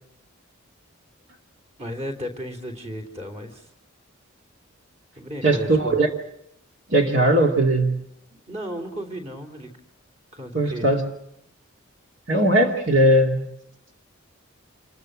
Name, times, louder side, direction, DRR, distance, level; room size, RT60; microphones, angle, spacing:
voice 1, 1.8-3.7 5.1-6.0 8.3-9.7 10.3-10.9, equal, 30° right, 4 dB, 3.2 m, -34 dB
voice 2, 5.4-6.1 6.9-8.0 10.5-11.1 12.3-13.5, right 1 dB, 60° right, 1 dB, 2.5 m, -19 dB
27.5 x 22.0 x 6.3 m, 0.75 s
head